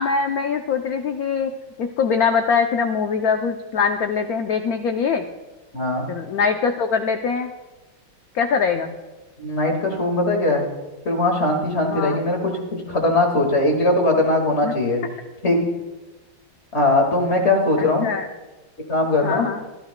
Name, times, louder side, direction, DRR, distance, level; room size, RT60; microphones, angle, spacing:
voice 1, 0.0-1.5 1.8-5.2 6.1-7.5 8.3-8.9 11.9-12.2 14.6-14.7 17.8-18.3 19.2-19.6, left 5 dB, 80° left, 6 dB, 0.8 m, -22 dB
voice 2, 5.7-6.1 9.4-10.7 11.1-12.6 12.9-15.0 15.4-15.6 16.7-18.1 18.9-19.5, left 2 dB, 35° left, 2 dB, 2.0 m, -20 dB
24.0 x 11.5 x 2.2 m, 1.2 s
omnidirectional pair, 2.3 m